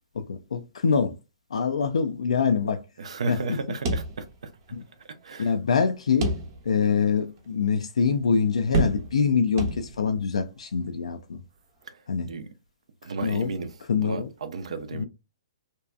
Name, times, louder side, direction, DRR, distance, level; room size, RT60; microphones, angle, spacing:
voice 1, 0.1-1.2 1.5-2.8 3.3-3.6 4.7-4.8 5.4-6.3 6.6-11.4 12.1-12.3 13.2-13.5 13.9-14.3 14.9-15.0, left 6 dB, 85° left, 0.4 m, -25 dB
voice 2, 3.0-4.3 5.2-5.5 11.9-12.0 12.3-12.5 13.0-13.7 14.0-15.0, right 4 dB, 75° right, 0.5 m, -33 dB
sound 1, 3.8-4.7 5.0-5.1 6.2-6.9 7.4-7.5 8.7-9.3 9.6-10.2, right 2 dB, 40° right, 0.8 m, -28 dB
2.6 x 2.2 x 2.4 m
hypercardioid pair, 140°, 3 cm